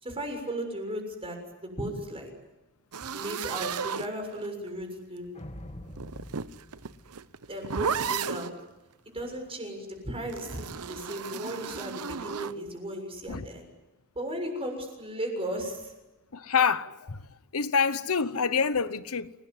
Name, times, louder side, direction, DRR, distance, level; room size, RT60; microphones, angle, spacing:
voice 1, 0.0-2.3 3.1-5.3 7.5-8.5 9.1-13.7 14.2-15.9, right 1 dB, 25° right, 6.9 m, -36 dB
sound 1, 2.9-4.7 5.9-8.6 10.3-12.6, right 6 dB, 90° right, 0.8 m, -34 dB
sound 2, 5.3-7.8, left 1 dB, 30° left, 1.9 m, -45 dB
voice 2, 16.3-19.3, left 6 dB, 75° left, 1.0 m, -27 dB
29.5 x 19.0 x 9.7 m
head